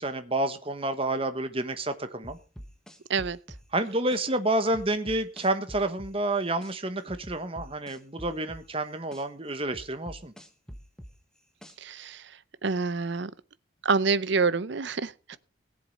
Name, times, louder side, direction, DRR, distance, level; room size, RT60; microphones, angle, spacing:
voice 1, 0.0-2.4 3.7-10.3, right 1 dB, 30° right, 1.2 m, -29 dB
sound 1, 2.2-4.2 4.7-6.7 7.1-9.2 9.7-12.0, equal, 5° left, 1.2 m, -45 dB
voice 2, 11.8-13.3 13.8-15.4, right 4 dB, 60° right, 0.6 m, -27 dB
17.5 x 7.7 x 5.2 m
head